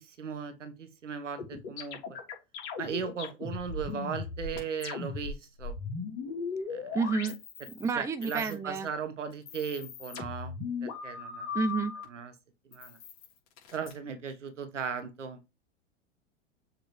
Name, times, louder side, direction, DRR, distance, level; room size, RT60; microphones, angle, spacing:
voice 1, 0.0-2.0 2.8-5.8 6.7-7.0 7.9-10.5 10.8-11.6 12.1-12.3 12.7-13.0 13.7-15.4, right 6 dB, 80° right, 1.3 m, -37 dB
sound 1, 1.4-7.9 8.2-8.9 9.3-12.0 12.7-13.9, left 5 dB, 55° left, 3.6 m, -38 dB
voice 2, 6.9-7.3 7.7-8.9 11.5-11.9, right 4 dB, 10° right, 0.5 m, -29 dB
6.9 x 5.0 x 3.2 m
hypercardioid pair, 95°, 36 cm